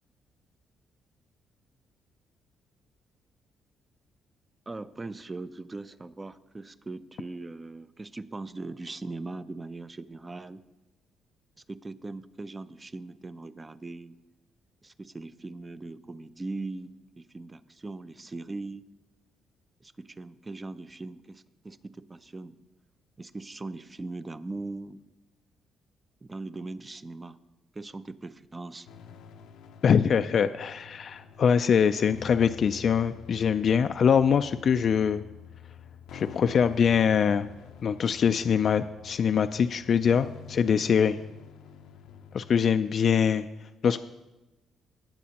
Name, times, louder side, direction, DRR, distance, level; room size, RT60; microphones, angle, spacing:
voice 1, 4.7-10.6 11.7-14.2 14.8-18.8 19.8-22.6 23.2-25.1 26.2-27.4 27.7-28.9, right 3 dB, 25° right, 13 dB, 0.5 m, -40 dB
sound 1, 28.9-42.6, left 7 dB, 85° left, 0.7 m, -48 dB
voice 2, 29.8-35.2 36.1-37.5 37.8-41.2 42.3-43.5 43.8-44.0, left 7 dB, 55° left, 9 dB, 0.3 m, -23 dB
19.0 x 8.2 x 2.9 m, 1.1 s
cardioid pair, 90°, 0 cm